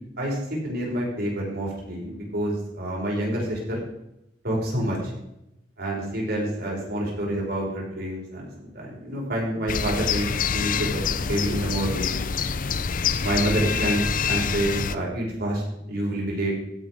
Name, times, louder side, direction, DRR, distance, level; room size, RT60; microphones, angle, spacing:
voice 1, 0.2-3.8 4.4-5.1 5.8-12.2 13.2-16.5, right 1 dB, 60° right, -3 dB, 6.2 m, -28 dB
sound 1, 9.7-14.9, left 6 dB, 50° left, 0.6 m, -26 dB
16.5 x 8.9 x 5.1 m, 0.85 s
head